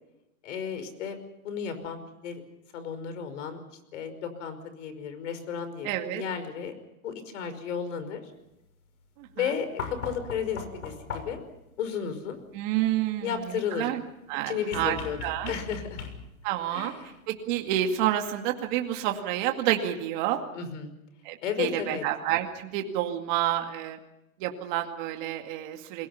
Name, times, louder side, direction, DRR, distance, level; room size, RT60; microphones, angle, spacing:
voice 1, 0.4-1.2 1.4-2.4 2.7-3.6 3.9-6.7 7.0-8.2 9.4-11.4 11.8-12.4 13.2-13.9 14.5-15.2 15.5-16.0 16.7-17.2 20.5-20.9 21.4-22.0, left 7 dB, 60° left, 11 dB, 5.4 m, -33 dB
voice 2, 5.8-6.2 9.2-9.3 12.5-13.3 13.8-14.0 14.3-15.5 16.4-16.9 17.3-20.5 21.2-24.0 24.4-26.1, right 12 dB, 35° right, 4 dB, 2.2 m, -29 dB
sound 1, 9.8-11.5 14.7-16.5 18.0-18.1, left 5 dB, 85° left, 6.6 m, -38 dB
29.0 x 22.0 x 5.7 m, 0.88 s
supercardioid pair, 165°, 42 cm